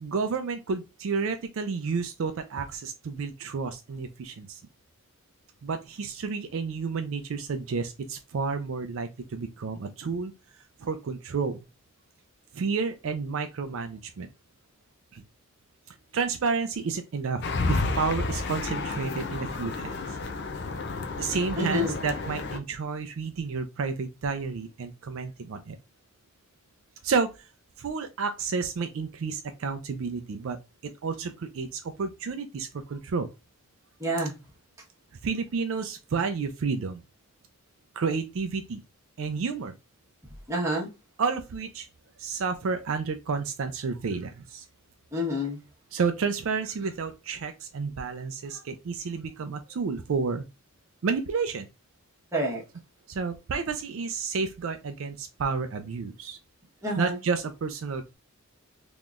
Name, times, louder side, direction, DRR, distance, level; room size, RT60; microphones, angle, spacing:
voice 1, 0.0-4.6 5.6-10.3 10.8-11.6 12.5-14.3 15.1-15.2 16.1-17.4 17.7-19.9 21.2-25.8 27.0-27.3 27.8-30.6 31.0-33.3 35.2-37.0 38.0-38.8 39.2-39.7 41.2-41.9 42.2-44.6 45.9-50.4 51.0-51.7 53.1-56.4 57.0-58.2, right 5 dB, 65° right, 0.4 m, -30 dB
sound 1, 17.4-22.6, left 3 dB, 50° left, 0.5 m, -31 dB
voice 2, 21.6-21.9 34.0-34.3 40.5-40.9 45.1-45.6 52.3-52.6 56.8-57.2, equal, 15° right, 1.1 m, -28 dB
3.7 x 3.0 x 2.4 m
head